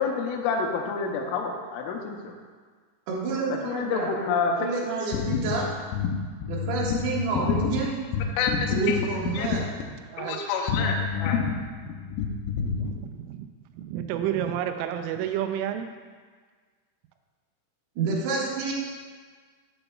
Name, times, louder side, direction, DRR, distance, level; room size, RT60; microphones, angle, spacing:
voice 1, 0.0-2.3 3.5-4.7 5.2-7.8 8.1-9.1 9.3-9.6 10.2-12.8, left 5 dB, 80° left, 1 dB, 3.2 m, -28 dB
voice 2, 3.1-4.1 4.4-5.7 6.5-7.9 8.7-9.6 18.0-18.7, right 4 dB, 65° right, -5 dB, 3.3 m, -29 dB
voice 3, 12.8-13.5 13.8-15.9, right 10 dB, 85° right, 6 dB, 3.2 m, -30 dB
12.0 x 7.9 x 2.3 m, 1.6 s
omnidirectional pair, 5.9 m